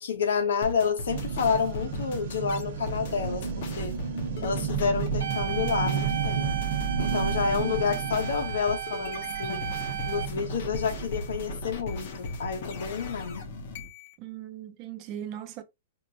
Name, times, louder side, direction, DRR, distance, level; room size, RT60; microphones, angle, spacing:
voice 1, 0.0-4.0 4.4-6.5 7.0-9.6 10.1-13.5, left 6 dB, 85° left, 1.1 m, -29 dB
sound 1, 0.6-14.1, left 3 dB, 45° left, 0.7 m, -38 dB
sound 2, 1.1-13.0, right 6 dB, 45° right, 0.9 m, -33 dB
sound 3, 5.2-10.3, right 10 dB, 75° right, 0.6 m, -35 dB
voice 2, 7.6-8.0 14.2-15.6, right 11 dB, 25° right, 0.4 m, -39 dB
4.4 x 2.1 x 2.7 m
hypercardioid pair, 175°, 0 cm